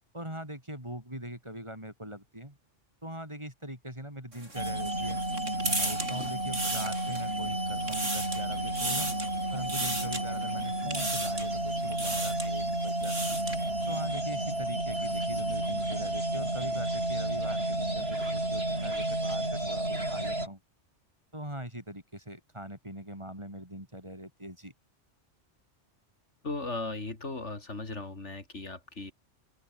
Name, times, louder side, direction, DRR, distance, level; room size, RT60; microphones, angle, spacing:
voice 1, 0.1-2.6 3.0-5.2 5.6-9.1 9.5-13.4 13.9-20.6 21.3-24.7, right 1 dB, 25° right, 6.7 m, -42 dB
sound 1, 4.3-7.4 7.7-8.5 8.8-9.3 9.7-10.2 10.9-11.5 11.9-12.5 12.9-13.6, right 1 dB, 85° right, 8.2 m, -34 dB
sound 2, 4.6-20.5, right 1 dB, 55° right, 7.4 m, -31 dB
voice 2, 26.4-29.1, left 3 dB, 70° left, 3.7 m, -37 dB
open air
omnidirectional pair, 1.2 m